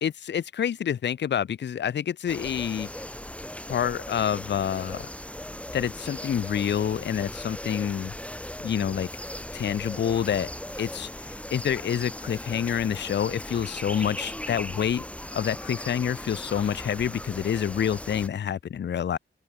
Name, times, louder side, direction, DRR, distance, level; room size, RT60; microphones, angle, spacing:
voice 1, 0.0-2.9 3.7-5.1 5.7-8.1 8.6-9.1 9.5-10.5 10.8-15.0 15.3-19.2, left 8 dB, 55° left, 0.5 m, -27 dB
sound 1, 2.3-18.3, left 1 dB, 5° left, 1.8 m, -38 dB
wide cardioid pair, 115°, 21 cm